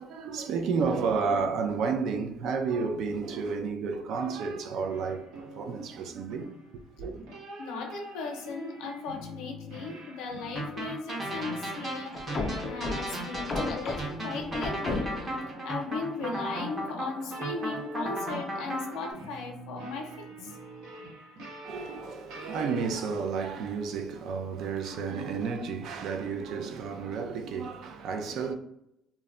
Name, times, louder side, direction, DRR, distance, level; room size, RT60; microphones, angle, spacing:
voice 1, 0.0-6.5 7.0-7.2 21.6-28.5, right 5 dB, 55° right, 0.4 m, -31 dB
sound 1, 4.9-22.8, equal, 80° right, 0.9 m, -44 dB
voice 2, 7.6-12.2 12.6-15.1 15.6-20.5 20.9-21.0, left 4 dB, 90° left, 0.6 m, -37 dB
sound 2, 10.6-19.1, right 1 dB, 25° right, 0.7 m, -36 dB
sound 3, 12.1-15.5, left 3 dB, 25° left, 0.3 m, -34 dB
2.2 x 2.1 x 3.6 m
cardioid pair, 165°, 0 cm